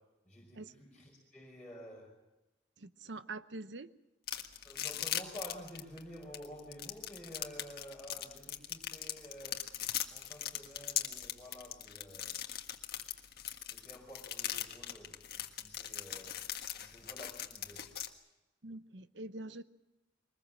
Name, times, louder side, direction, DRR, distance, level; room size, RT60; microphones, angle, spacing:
voice 1, 0.0-2.2 4.6-9.8 10.1-12.4 13.7-17.9, equal, 5° left, 5.3 m, -51 dB
voice 2, 2.8-3.9 18.6-19.6, right 2 dB, 75° right, 0.9 m, -45 dB
sound 1, 4.3-18.1, left 11 dB, 60° left, 1.7 m, -39 dB
23.0 x 20.5 x 7.6 m
head